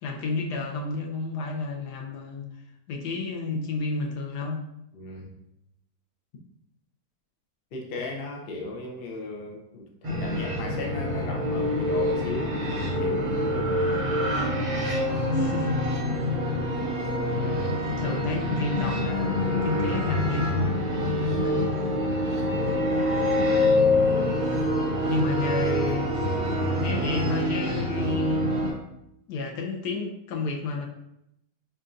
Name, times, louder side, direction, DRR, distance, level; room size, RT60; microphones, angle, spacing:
voice 1, 0.0-2.5 2.9-4.6 15.3-15.8 18.0-20.8 21.4-21.6 25.1-26.3 26.6-28.5 29.3-30.9, left 3 dB, 80° left, 1 dB, 1.2 m, -31 dB
voice 2, 4.9-5.3 7.7-13.8, left 2 dB, 55° left, -1 dB, 0.6 m, -36 dB
sound 1, 10.0-28.7, left 1 dB, 60° right, 1.2 m, -26 dB
5.1 x 2.4 x 2.5 m, 0.81 s
omnidirectional pair, 1.8 m